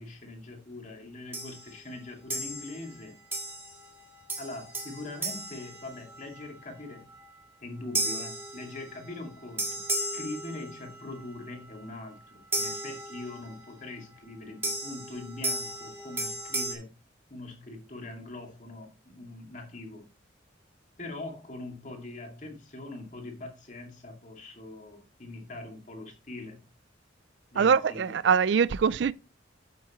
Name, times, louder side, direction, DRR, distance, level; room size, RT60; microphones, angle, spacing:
voice 1, 0.0-3.2 4.4-7.1 7.6-17.0 17.3-20.1 21.0-26.6 27.5-28.2, left 2 dB, 40° left, 2.3 m, -42 dB
sound 1, 1.3-1.7 2.3-2.9 3.3-3.9 4.3-6.4 8.0-9.1 9.6-11.0 12.5-13.6 14.6-16.7, right 1 dB, 10° right, 1.7 m, -34 dB
voice 2, 27.6-29.1, right 6 dB, 60° right, 0.4 m, -23 dB
8.4 x 8.4 x 3.1 m
head